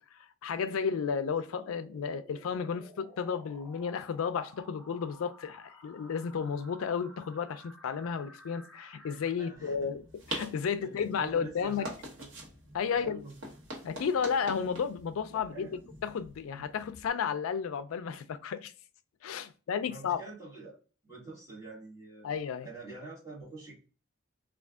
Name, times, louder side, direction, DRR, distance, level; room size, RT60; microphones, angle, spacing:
voice 1, 0.1-10.0 10.3-11.8 12.7-13.2 13.8-15.7 16.0-18.7 19.2-20.2 22.2-22.7, left 6 dB, 90° left, 0.4 m, -33 dB
sound 1, 0.5-9.3, equal, ahead, 0.5 m, -55 dB
voice 2, 9.4-9.7 10.6-12.4 12.9-13.5 15.5-15.7 16.5-16.7 19.8-20.7 21.0-22.3 22.6-23.8, right 3 dB, 15° right, 1.5 m, -47 dB
sound 2, 9.5-17.1, right 1 dB, 70° right, 1.0 m, -45 dB
3.4 x 2.4 x 2.3 m
head